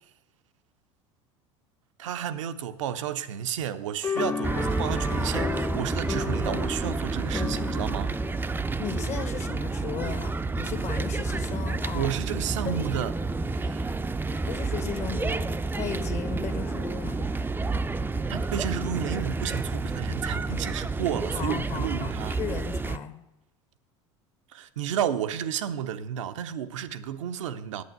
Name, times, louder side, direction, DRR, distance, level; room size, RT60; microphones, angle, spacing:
voice 1, 2.0-8.2 11.9-13.1 13.5-13.9 18.3-22.4 24.5-27.8, right 10 dB, 80° right, 0.7 m, -32 dB
sound 1, 4.0-9.6, left 4 dB, 15° left, 0.8 m, -34 dB
sound 2, 4.4-23.0, right 3 dB, 15° right, 0.5 m, -30 dB
voice 2, 8.8-12.1 12.6-12.8 14.5-17.3 21.3-23.2, left 8 dB, 50° left, 1.4 m, -36 dB
8.6 x 8.3 x 8.1 m
hypercardioid pair, 80°, 16 cm